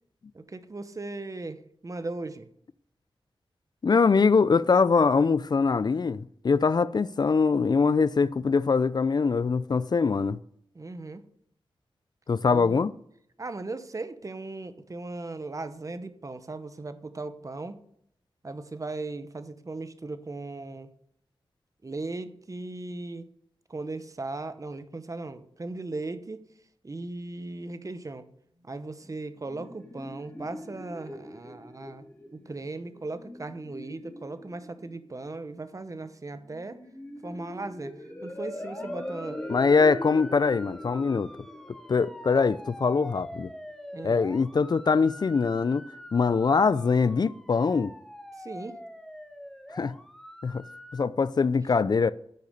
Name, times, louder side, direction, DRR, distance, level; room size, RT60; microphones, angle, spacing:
voice 1, 0.3-2.5 10.7-11.2 12.5-12.8 13.4-17.8 18.4-20.9 21.8-23.3 23.7-26.4 26.8-28.3 28.6-32.0 32.3-36.8 37.2-39.4 43.9-44.2 48.4-48.8, right 2 dB, 35° right, 0.9 m, -38 dB
voice 2, 3.8-10.4 12.3-12.9 39.5-41.3 41.9-43.5 44.0-45.8 46.1-47.9 49.7-49.9 50.4-50.6 50.9-52.1, left 5 dB, 45° left, 0.3 m, -23 dB
sound 1, 29.0-43.0, left 1 dB, 20° left, 3.3 m, -41 dB
sound 2, 38.6-51.0, equal, 5° left, 1.0 m, -45 dB
10.0 x 6.8 x 6.7 m
wide cardioid pair, 95°, 10 cm